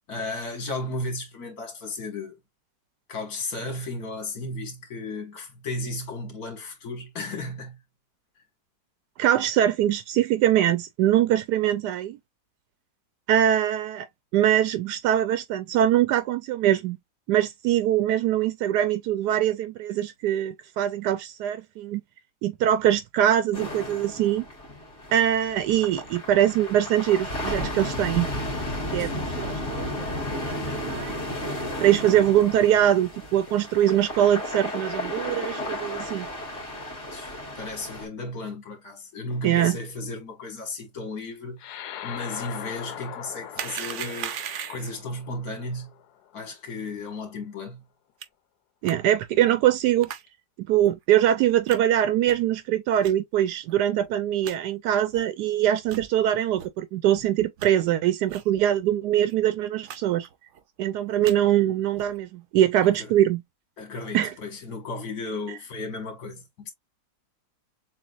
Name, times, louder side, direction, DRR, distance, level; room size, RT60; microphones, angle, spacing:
voice 1, 0.1-2.4 3.1-7.8 29.0-29.1 37.1-44.4 44.7-45.9 46.3-47.8 62.8-63.1 63.8-66.7, left 2 dB, 65° left, 2.2 m, -34 dB
voice 2, 9.2-12.2 13.3-14.1 14.3-17.0 17.3-22.0 22.4-24.4 25.1-28.3 28.9-29.9 30.3-31.2 31.8-36.3 39.4-39.8 48.8-50.1 50.6-60.3 60.8-63.4 64.1-64.3, right 11 dB, 85° right, 1.2 m, -23 dB
sound 1, 23.5-38.0, left 1 dB, 45° left, 2.5 m, -33 dB
sound 2, 41.6-46.3, left 10 dB, 80° left, 1.2 m, -40 dB
sound 3, 43.5-45.0 48.2-48.3 48.9-49.0 50.0-50.2 50.8-50.9 51.7-51.8 52.2-52.5 53.0-53.1 53.7-53.8 54.0-54.1 54.4-54.6 55.1-55.2 55.8-56.1 56.6-56.7 57.2-57.7 58.3-58.5 58.8-58.9 59.2-59.3 59.9-60.0 60.2-60.6 61.0-61.4 61.9-62.2, right 9 dB, 65° right, 0.8 m, -37 dB
6.9 x 2.4 x 2.5 m
omnidirectional pair, 1.7 m